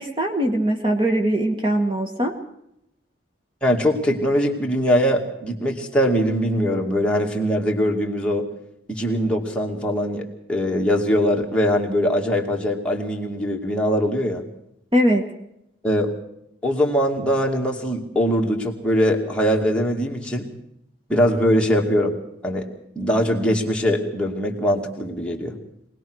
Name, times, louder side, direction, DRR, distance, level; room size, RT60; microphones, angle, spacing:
voice 1, 0.0-2.3 14.9-15.2, right 1 dB, 25° right, 4 dB, 1.5 m, -21 dB
voice 2, 3.6-8.5 8.9-14.4 15.8-16.1 16.6-20.5 21.1-22.1 22.4-22.7 23.0-25.6, equal, 5° left, -1 dB, 2.3 m, -22 dB
23.5 x 19.0 x 6.4 m, 0.79 s
head